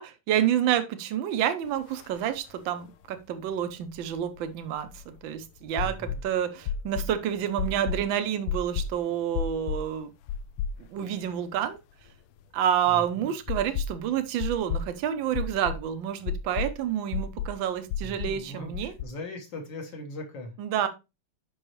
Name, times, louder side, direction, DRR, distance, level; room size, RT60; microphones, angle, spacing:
voice 1, 0.0-4.9 5.2-10.1 10.9-11.8 12.5-18.9 20.6-20.9, right 10 dB, 70° right, 9 dB, 1.5 m, -28 dB
sound 1, 2.0-2.1 2.3-2.4 3.9-5.2 5.8-6.2 6.7-7.1 7.6-8.0 8.5-8.9 9.3-9.9 10.3-11.1 11.4-11.5 13.5-14.0 14.4-14.9 15.3-15.8 16.3-16.7 17.1-17.5 17.9-18.4 18.7-19.0, left 6 dB, 80° left, 1.5 m, -31 dB
voice 2, 5.8-6.2 12.9-13.3 18.0-20.5, left 1 dB, 60° left, 3 dB, 2.3 m, -40 dB
6.2 x 5.6 x 3.1 m, 0.26 s
omnidirectional pair, 2.4 m